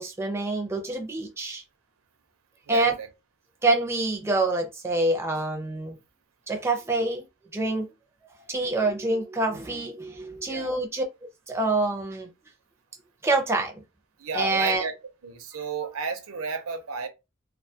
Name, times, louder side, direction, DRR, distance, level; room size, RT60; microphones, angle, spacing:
voice 1, 0.0-1.6 2.7-2.9 3.6-6.0 6.5-7.2 7.5-7.9 8.5-11.0 11.5-12.3 13.2-13.7 14.3-14.8, right 2 dB, 15° right, 0.4 m, -26 dB
voice 2, 2.7-3.1 10.5-10.7 14.2-14.9 15.2-17.1, right 5 dB, 85° right, 0.5 m, -32 dB
2.2 x 2.2 x 2.7 m
head